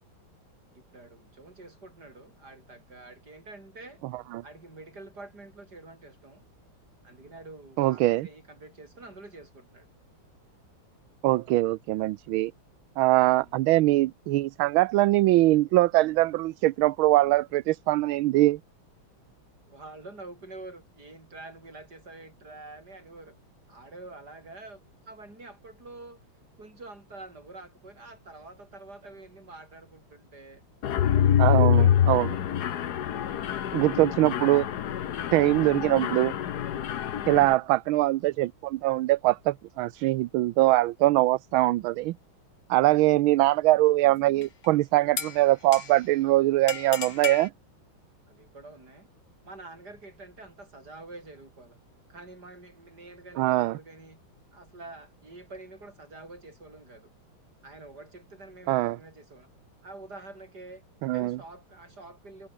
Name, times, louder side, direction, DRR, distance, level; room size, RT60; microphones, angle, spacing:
voice 1, 0.7-4.0 4.4-6.5 7.0-9.9 13.2-13.6 19.7-23.4 23.7-24.8 25.0-26.2 26.6-30.6 31.1-32.3 48.3-49.1 49.4-51.8 52.1-54.2 54.5-57.1 57.6-59.5 59.8-60.8 61.1-62.5, right 2 dB, 50° right, 6.6 m, -47 dB
voice 2, 7.8-8.3 11.2-12.5 13.0-18.6 31.4-32.3 33.7-34.7 35.3-36.3 37.3-42.2 42.7-47.5 53.4-53.8 58.7-59.0 61.0-61.4, right 17 dB, 80° right, 1.4 m, -22 dB
Mechanisms, 30.8-37.5, left 10 dB, 55° left, 1.4 m, -25 dB
sound 1, 44.4-44.7 45.2-46.2 46.7-47.5, left 6 dB, 80° left, 3.6 m, -35 dB
omnidirectional pair, 2.3 m